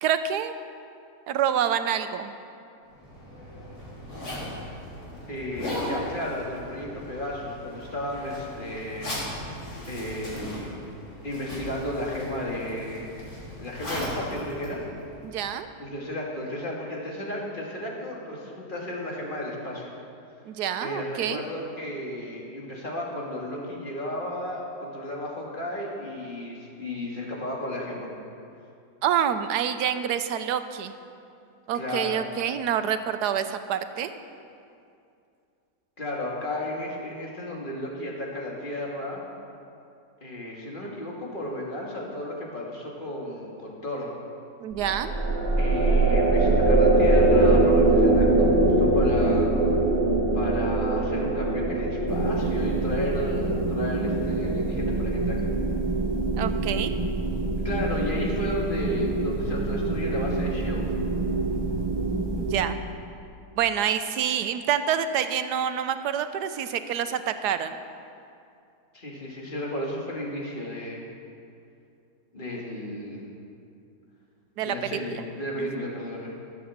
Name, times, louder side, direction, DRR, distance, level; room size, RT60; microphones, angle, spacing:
voice 1, 0.0-0.5 1.3-2.3 15.2-15.7 20.4-21.4 29.0-30.9 31.7-34.1 44.6-45.1 56.4-56.9 62.4-62.8 63.6-67.7 74.6-75.0 75.6-75.9, right 9 dB, 90° right, 10 dB, 1.3 m, -27 dB
Zipper (clothing), 2.9-15.5, left 1 dB, 70° left, 3.7 m, -37 dB
voice 2, 5.3-9.1 9.9-10.8 11.2-13.1 13.6-14.8 15.8-19.9 20.8-28.1 31.7-32.3 36.0-39.2 40.2-44.1 45.6-49.5 50.3-55.5 57.6-60.9 68.9-71.1 72.3-73.3 74.6-76.4, left 1 dB, 30° left, -3 dB, 2.3 m, -33 dB
sound 1, 44.8-56.2, right 2 dB, 45° right, 2.2 m, -22 dB
sound 2, 52.1-62.6, right 2 dB, 25° right, 0.7 m, -27 dB
14.0 x 7.7 x 7.2 m, 2.5 s
omnidirectional pair, 1.7 m